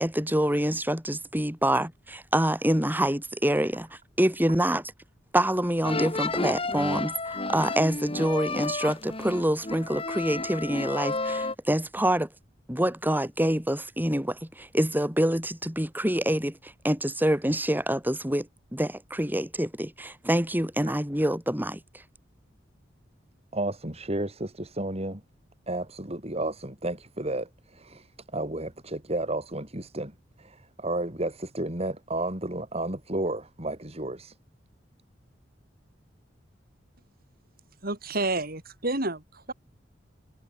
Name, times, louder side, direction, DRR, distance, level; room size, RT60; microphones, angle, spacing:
voice 1, 0.0-3.9 4.2-4.8 5.3-12.3 12.7-18.5 18.7-21.8, right 1 dB, 10° right, 6.9 m, -26 dB
sound 1, 5.8-11.5, left 3 dB, 30° left, 5.6 m, -31 dB
voice 2, 23.5-25.2 25.7-34.3, right 1 dB, 35° right, 5.1 m, -32 dB
voice 3, 37.8-39.5, right 2 dB, 55° right, 6.1 m, -30 dB
head